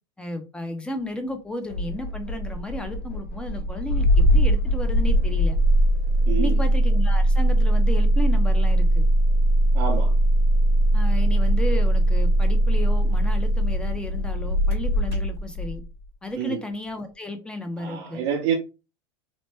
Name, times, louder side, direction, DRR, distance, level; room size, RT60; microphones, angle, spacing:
voice 1, 0.2-5.6 6.4-9.0 10.9-15.8 16.2-18.2, left 2 dB, 5° left, 0.7 m, -33 dB
Engine starting, 1.7-15.8, right 1 dB, 50° left, 1.4 m, -20 dB
voice 2, 6.3-6.6 9.7-10.1 16.4-16.6 17.8-18.5, right 8 dB, 65° right, 0.8 m, -27 dB
2.9 x 2.1 x 3.2 m
supercardioid pair, 110°, 13 cm